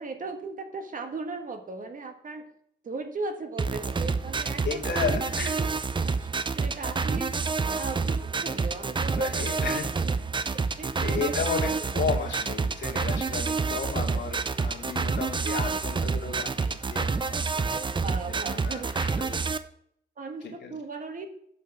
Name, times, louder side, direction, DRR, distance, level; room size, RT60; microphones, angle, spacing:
voice 1, 0.0-2.4 2.8-5.7 6.0-6.3 6.5-7.3 7.7-10.1 10.7-11.3 14.1-14.2 17.7-19.2 20.2-21.3, right 3 dB, 50° right, 5 dB, 1.6 m, -37 dB
sound 1, 3.6-19.6, right 4 dB, 25° right, 0.6 m, -28 dB
voice 2, 4.6-5.6 9.1-9.9 11.0-17.6 18.5-19.5 20.4-20.7, left 6 dB, 80° left, 0 dB, 2.4 m, -33 dB
7.7 x 5.7 x 7.2 m, 0.68 s
cardioid pair, 105°, 18 cm